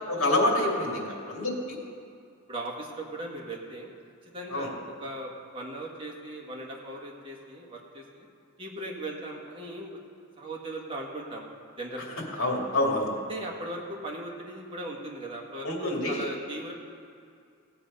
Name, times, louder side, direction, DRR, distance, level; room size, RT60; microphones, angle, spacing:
voice 1, 0.1-1.8 4.5-4.7 12.3-13.1 15.6-16.3, left 1 dB, 70° left, -1 dB, 2.5 m, -27 dB
voice 2, 2.5-3.9 4.2-8.3 8.6-10.0 10.4-11.5 11.8-12.2 13.3-16.7, right 1 dB, 25° right, -2 dB, 1.7 m, -38 dB
16.5 x 7.8 x 5.5 m, 2.4 s
head